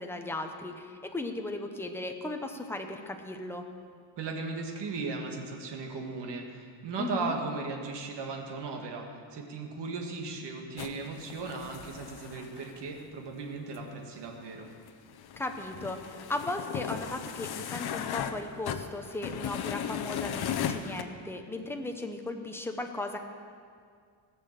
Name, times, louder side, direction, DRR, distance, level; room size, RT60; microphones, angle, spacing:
voice 1, 0.0-3.7 7.0-7.3 15.4-23.2, left 2 dB, 5° left, 4 dB, 0.9 m, -36 dB
voice 2, 4.2-14.7, right 4 dB, 60° right, 2 dB, 2.0 m, -37 dB
sound 1, 10.8-12.8 13.7-13.8 14.3-14.4 14.6-18.4 18.7-21.0, left 8 dB, 50° left, 0.8 m, -36 dB
17.0 x 6.9 x 7.5 m, 2.1 s
cardioid pair, 145°, 48 cm